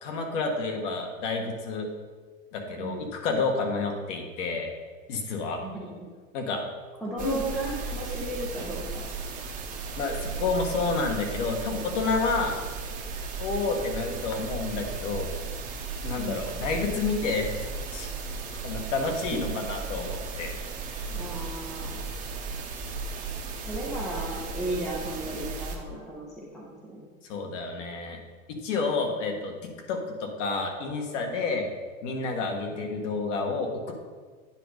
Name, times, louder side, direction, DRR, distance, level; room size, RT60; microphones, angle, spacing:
voice 1, 0.0-1.9 2.5-4.7 5.1-5.6 6.3-6.7 7.2-7.4 9.9-12.6 13.4-15.3 16.0-17.5 17.9-18.1 18.6-20.5 20.8-21.2 27.2-28.2 28.5-31.7 32.0-33.9, left 3 dB, 60° left, 3 dB, 1.7 m, -29 dB
voice 2, 2.8-3.1 5.6-5.8 7.0-9.0 16.2-16.4 19.6-19.7 21.1-22.0 23.7-27.1 29.1-29.4, right 1 dB, ahead, -4 dB, 0.4 m, -35 dB
sound 1, 7.2-25.8, right 4 dB, 20° right, 0.8 m, -35 dB
9.3 x 5.2 x 5.0 m, 1.5 s
supercardioid pair, 155°, 41 cm